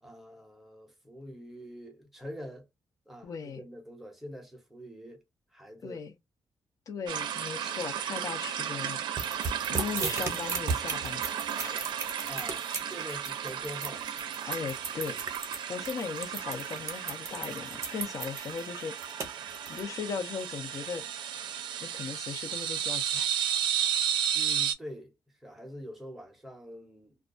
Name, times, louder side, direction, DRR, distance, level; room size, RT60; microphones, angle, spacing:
voice 1, 0.0-2.7 3.1-5.2 5.5-6.0 9.6-9.9 12.2-14.1 24.3-27.2, equal, 5° right, 0.7 m, -45 dB
voice 2, 3.2-3.6 5.8-6.1 6.9-9.0 9.7-11.2 11.6-12.0 13.0-13.2 14.5-15.2 15.7-19.3 19.7-21.0 21.8-23.3, left 6 dB, 50° left, 0.5 m, -38 dB
sound 1, 7.1-24.7, right 9 dB, 80° right, 0.4 m, -34 dB
sound 2, 9.2-19.8, right 4 dB, 40° right, 0.7 m, -35 dB
2.2 x 2.2 x 2.4 m
wide cardioid pair, 160°, 8 cm